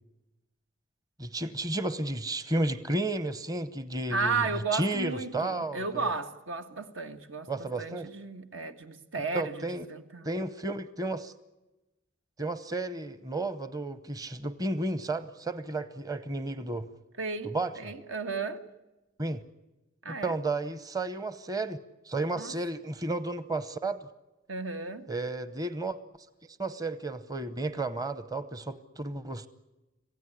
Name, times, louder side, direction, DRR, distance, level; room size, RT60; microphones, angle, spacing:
voice 1, 1.2-6.1 7.5-8.1 9.3-9.9 10.2-11.3 12.4-16.9 17.4-17.9 19.2-19.4 20.1-21.8 22.0-24.1 25.1-26.0 26.6-29.5, right 2 dB, 20° right, 0.9 m, -32 dB
voice 2, 4.1-9.6 9.9-10.3 17.2-18.6 20.0-20.3 22.4-22.5 24.5-25.1, right 4 dB, 80° right, 1.8 m, -34 dB
26.5 x 16.0 x 10.0 m
head